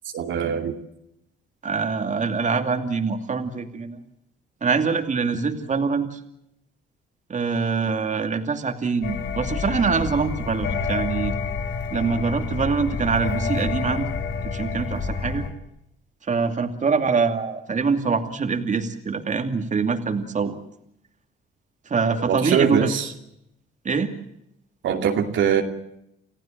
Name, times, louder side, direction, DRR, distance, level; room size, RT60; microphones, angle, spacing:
voice 1, 0.1-0.7 22.3-23.1 24.8-25.6, right 8 dB, 75° right, 4 dB, 2.6 m, -22 dB
voice 2, 1.6-4.0 4.6-6.2 7.3-11.4 11.9-14.1 14.4-15.5 16.3-20.6 21.9-22.9 23.8-24.2, right 5 dB, 40° right, 6 dB, 2.6 m, -24 dB
sound 1, 9.0-15.5, left 5 dB, 70° left, 4.1 m, -28 dB
30.0 x 15.0 x 9.0 m, 0.80 s
cardioid pair, 90°, 20 cm